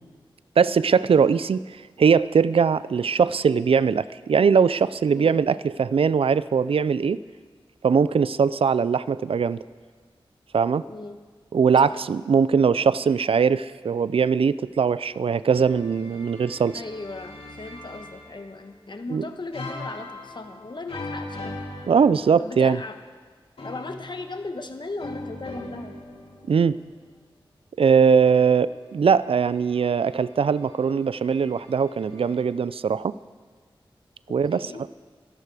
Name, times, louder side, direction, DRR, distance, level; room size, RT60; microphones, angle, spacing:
voice 1, 0.6-7.2 7.8-9.6 10.5-10.8 11.5-16.8 19.1-19.2 21.9-22.8 26.5-26.8 27.8-33.1 34.3-34.7, right 6 dB, 85° right, 17 dB, 0.4 m, -21 dB
voice 2, 10.9-11.2 11.8-12.0 16.7-21.5 22.4-23.0 23.6-25.9 34.5-34.9, left 3 dB, 55° left, 7 dB, 1.4 m, -37 dB
sound 1, 15.5-18.7 19.5-22.7 23.6-27.0 29.0-32.4, left 2 dB, 85° left, 2.6 m, -41 dB
24.5 x 11.5 x 4.9 m, 1.5 s
wide cardioid pair, 50°, 9 cm